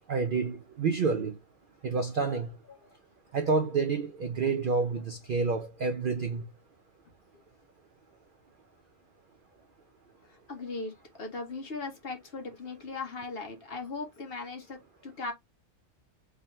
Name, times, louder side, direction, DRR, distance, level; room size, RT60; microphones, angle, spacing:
voice 1, 0.1-1.3 1.8-2.5 3.3-6.4, right 4 dB, 65° right, 0.5 m, -28 dB
voice 2, 10.2-15.3, left 3 dB, 45° left, 1.2 m, -39 dB
3.7 x 2.8 x 3.0 m
omnidirectional pair, 1.4 m